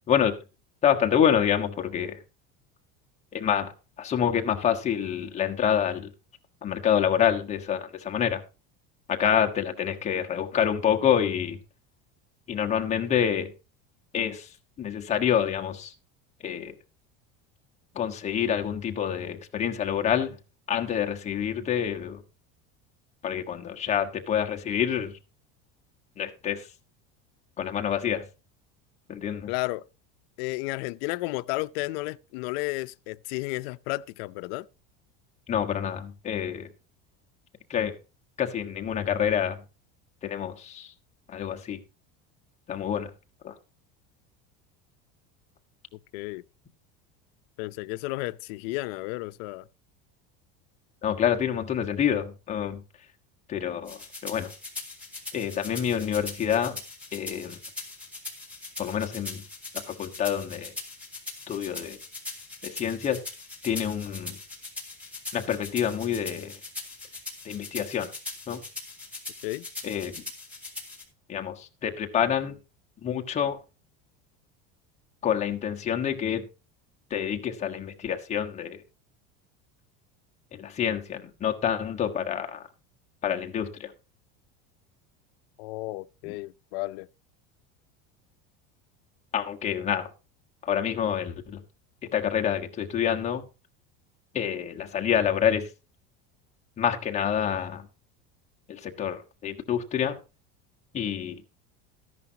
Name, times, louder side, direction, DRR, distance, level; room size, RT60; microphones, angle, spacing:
voice 1, 0.8-2.2 3.3-3.7 4.0-6.1 6.6-8.4 9.1-11.6 12.5-13.5 14.1-14.5 14.8-15.9 16.4-16.7 17.9-20.4 20.7-22.2 23.2-25.2 26.2-26.7 27.6-28.2 29.1-29.5 35.5-36.7 37.7-38.0 38.4-39.6 40.2-40.9 41.3-41.8 42.7-43.1 43.4-43.5 51.0-52.8 53.5-54.5 55.3-56.8 57.1-57.6 58.8-59.4 59.7-60.7 61.5-62.0 62.6-63.2 63.6-64.4 65.3-66.5 67.4-68.1 68.5-68.6 69.8-70.2 71.3-72.5 73.0-73.6 75.2-76.4 77.1-78.8 80.6-82.6 83.2-83.9 86.2-86.3 89.3-90.1 90.6-91.6 92.1-93.4 94.3-95.7 96.8-97.9 98.7-100.2 100.9-101.4, left 9 dB, 20° left, 1.3 m, -27 dB
voice 2, 29.5-29.8 30.4-34.7 46.1-46.4 47.6-49.6 69.4-69.6 85.6-87.1, left 21 dB, 65° left, 0.6 m, -32 dB
sound 1, 53.9-71.0, left 3 dB, 5° right, 3.5 m, -40 dB
14.0 x 11.0 x 2.8 m
cardioid pair, 170°, 32 cm